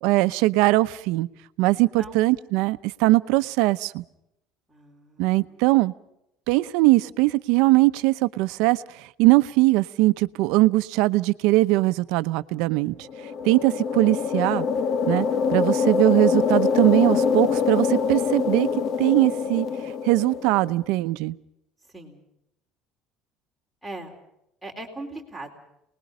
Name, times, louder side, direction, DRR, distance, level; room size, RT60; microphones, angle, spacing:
voice 1, 0.0-1.3 1.6-4.0 5.2-5.9 6.5-13.1 13.4-14.7 15.1-15.3 15.5-18.7 19.0-19.7 20.0-21.4, right 20 dB, 75° right, 14 dB, 0.8 m, -21 dB
voice 2, 4.7-5.6 21.9-22.2 23.8-24.2 24.6-25.5, right 2 dB, ahead, -1 dB, 3.9 m, -39 dB
sound 1, 13.0-20.7, left 6 dB, 40° left, 1.0 m, -24 dB
29.5 x 20.5 x 5.1 m, 0.80 s
cardioid pair, 155°, 0 cm